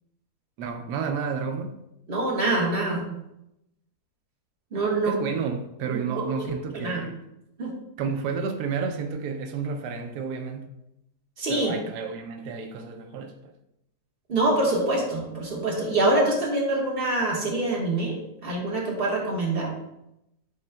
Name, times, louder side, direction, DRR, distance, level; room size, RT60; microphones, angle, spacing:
voice 1, 0.6-1.8 5.1-7.2 8.0-10.7 11.5-13.5, right 5 dB, 90° right, 1.2 m, -31 dB
voice 2, 2.1-3.0 4.7-5.1 5.9-6.2 6.8-7.0 7.6-7.7 11.4-11.7 14.3-19.7, right 2 dB, 35° right, 1.6 m, -25 dB
10.5 x 4.2 x 2.2 m
omnidirectional pair, 1.7 m